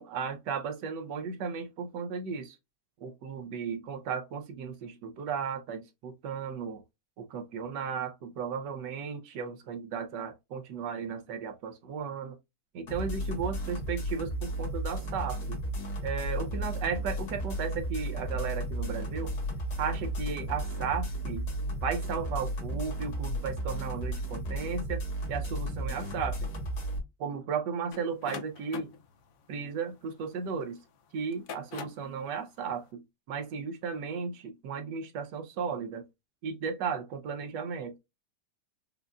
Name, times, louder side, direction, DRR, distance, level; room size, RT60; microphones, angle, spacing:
voice 1, 0.0-2.6 3.0-6.8 7.2-12.4 12.7-15.6 16.0-19.3 19.8-21.5 21.8-25.0 25.3-26.5 27.2-28.9 29.5-30.8 31.1-36.0 36.4-38.0, right 6 dB, 80° right, 1.3 m, -35 dB
sound 1, 12.9-27.0, right 1 dB, 65° left, 1.8 m, -34 dB
sound 2, 27.9-30.6 31.2-32.1, left 6 dB, 80° left, 0.6 m, -43 dB
5.2 x 2.4 x 2.3 m
omnidirectional pair, 1.9 m